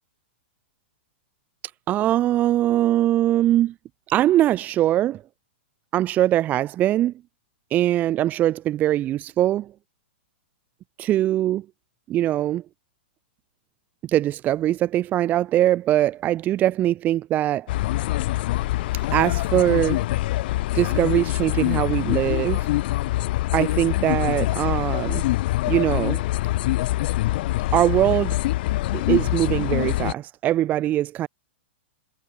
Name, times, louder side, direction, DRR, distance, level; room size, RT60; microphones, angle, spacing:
voice 1, 1.9-3.7 4.1-5.2 5.9-7.1 7.7-9.7 11.0-11.6 12.1-12.6 14.0-17.7 19.1-20.0 20.7-22.7 23.5-25.2 25.7-26.2 27.7-28.4 29.1-31.3, right 13 dB, 25° right, 0.7 m, -22 dB
sound 1, 17.7-30.1, left 17 dB, 55° left, 0.9 m, -24 dB
hypercardioid pair, 135°, 6 cm